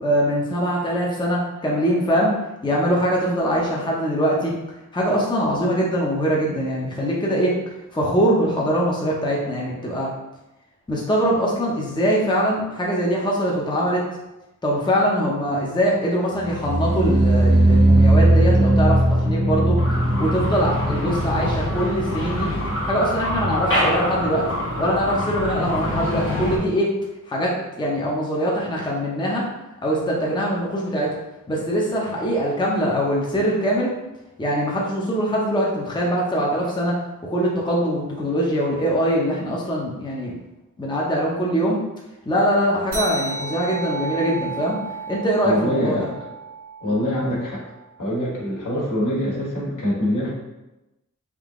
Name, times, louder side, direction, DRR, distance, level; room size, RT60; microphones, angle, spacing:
voice 1, 0.0-2.3 2.6-4.6 4.9-7.6 7.9-10.1 10.9-14.0 14.6-19.8 20.2-22.5 22.9-24.5 24.8-26.9 27.3-29.4 29.8-31.1 31.5-33.9 34.4-37.0 37.2-40.3 40.8-41.8 42.3-44.8 45.1-46.1, equal, 15° left, -3 dB, 0.6 m, -22 dB
sound 1, 16.4-23.5 23.7-24.2 24.5-24.6, right 1 dB, 35° right, 0.7 m, -19 dB
sound 2, 19.8-26.6, left 1 dB, 40° left, 0.8 m, -25 dB
sound 3, 42.9-47.8, right 4 dB, 80° right, 1.2 m, -33 dB
voice 2, 45.4-46.3 46.8-47.6 48.0-50.3, equal, 70° left, -6 dB, 1.5 m, -24 dB
3.7 x 2.8 x 3.6 m, 0.99 s
wide cardioid pair, 130°, 32 cm